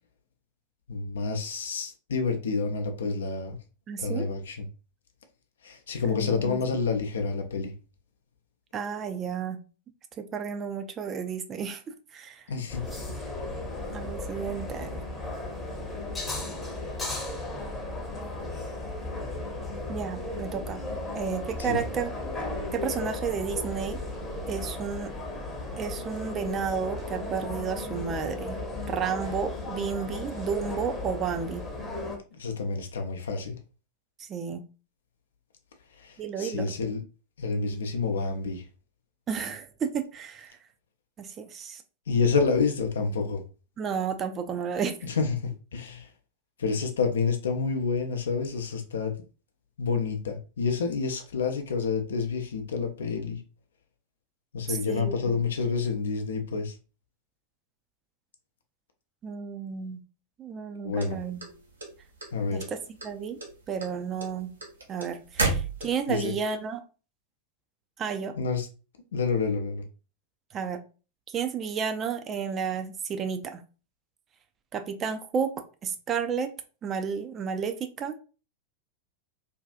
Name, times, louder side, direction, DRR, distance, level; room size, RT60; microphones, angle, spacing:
voice 1, 0.9-3.6 4.0-4.7 5.6-7.7 12.5-12.8 21.6-21.8 32.4-33.6 36.0-37.0 37.4-38.6 42.1-43.4 45.0-46.1 46.6-49.1 49.8-53.4 54.5-56.7 60.8-61.2 62.3-62.6 66.1-66.3 68.3-68.7 69.1-69.8, left 4 dB, 65° left, 0.4 m, -28 dB
voice 2, 3.9-4.3 6.1-6.6 8.7-9.6 10.2-11.8 12.1-12.4 13.9-15.0 19.9-20.8 21.1-22.1 22.7-24.0 24.5-25.1 25.8-28.6 28.9-31.6 34.2-34.6 36.2-36.7 39.3-40.5 41.2-41.8 43.8-44.9 54.7-55.3 59.2-60.0 60.4-61.4 62.5-62.8 63.0-63.4 63.7-64.5 64.9-66.8 68.0-68.3 70.5-70.8 71.3-73.6 74.7-75.5 75.8-76.5 76.8-78.2, right 6 dB, 25° right, 0.4 m, -32 dB
cafetería planta alta, 12.7-32.2, left 2 dB, 15° left, 0.7 m, -35 dB
sound 1, 61.0-62.3 62.6-63.1 63.4-66.2, right 2 dB, 75° right, 0.6 m, -30 dB
2.6 x 2.3 x 2.2 m
figure-of-eight pair, 90°, 0 cm